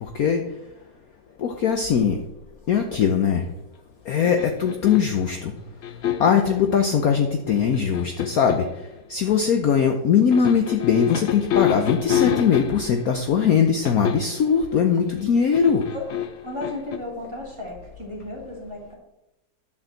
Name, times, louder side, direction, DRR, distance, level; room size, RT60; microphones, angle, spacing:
voice 1, 0.0-0.4 1.4-2.2 2.7-3.4 4.1-5.5 6.2-8.7 9.1-15.8, left 7 dB, 60° left, 5 dB, 1.1 m, -20 dB
sound 1, 4.2-5.2 5.8-6.5 7.5-8.7 10.3-13.0 13.9-14.4 15.5-17.0, left 10 dB, 80° left, 0.6 m, -26 dB
voice 2, 16.4-19.0, left 2 dB, 15° right, -2 dB, 2.8 m, -34 dB
10.5 x 4.7 x 7.7 m, 0.96 s
omnidirectional pair, 2.0 m